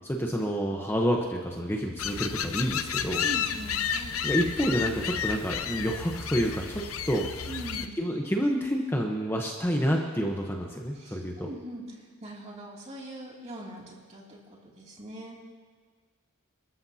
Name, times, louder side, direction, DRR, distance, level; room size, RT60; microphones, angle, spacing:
voice 1, 0.0-3.3 4.2-7.2 8.0-11.5, equal, 10° left, 0 dB, 1.0 m, -28 dB
sound 1, 2.0-7.9, left 7 dB, 80° left, 0.7 m, -32 dB
voice 2, 3.2-4.2 7.5-8.0 10.9-15.4, right 1 dB, 30° right, -3 dB, 2.7 m, -42 dB
28.0 x 13.5 x 2.8 m, 1.5 s
head